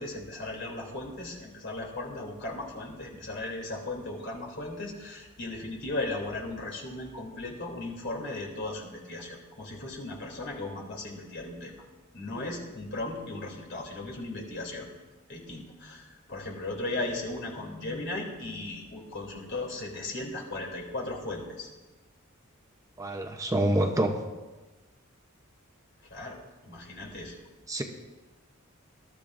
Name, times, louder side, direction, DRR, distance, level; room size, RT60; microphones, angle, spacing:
voice 1, 0.0-11.7 12.1-14.9 15.3-21.7 26.0-27.4, left 2 dB, 60° left, 0 dB, 3.0 m, -37 dB
voice 2, 23.0-24.2 27.7-27.8, right 1 dB, 15° right, 3 dB, 0.8 m, -26 dB
20.5 x 12.0 x 2.6 m, 1.2 s
head